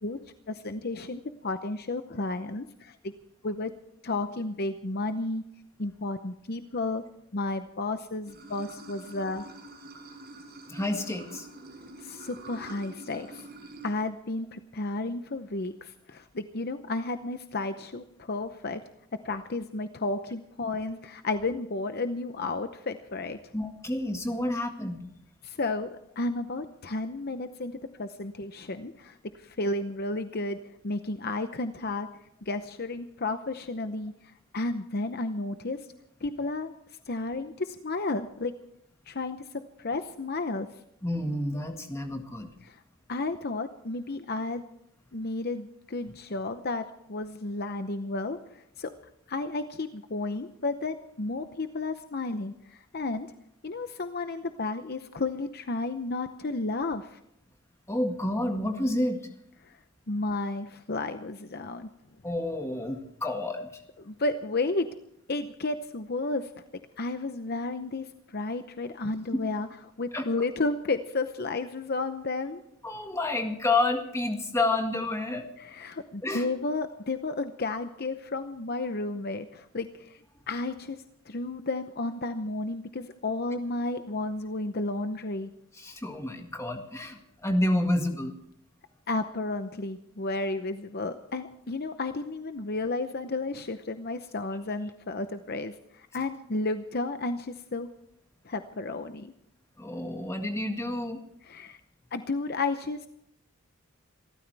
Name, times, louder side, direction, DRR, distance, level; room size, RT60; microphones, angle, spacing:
voice 1, 0.5-3.1 3.4-3.7 4.0-5.4 5.8-7.0 7.3-9.5 12.0-13.5 13.8-18.8 19.2-23.5 25.4-25.9 26.2-32.1 32.4-35.8 36.2-36.7 37.1-38.5 39.1-40.7 42.6-42.8 43.1-44.6 45.1-48.9 49.3-53.3 53.6-57.2 59.6-59.8 60.1-61.9 64.0-64.9 65.3-66.5 67.0-69.7 70.0-72.6 75.6-81.0 81.3-85.5 89.1-97.9 98.4-99.3 101.4-101.8 102.1-103.1, left 2 dB, 45° left, 9 dB, 0.8 m, -32 dB
Water / Sink (filling or washing), 8.2-13.9, right 2 dB, 45° right, 5.4 m, -46 dB
voice 2, 10.7-11.5 23.5-25.0 41.0-42.5 57.9-59.2 62.2-63.8 70.1-70.3 72.8-75.5 76.2-76.5 85.8-88.3 99.8-101.2, left 2 dB, 15° left, 4 dB, 1.8 m, -29 dB
27.5 x 13.5 x 3.4 m, 0.74 s
head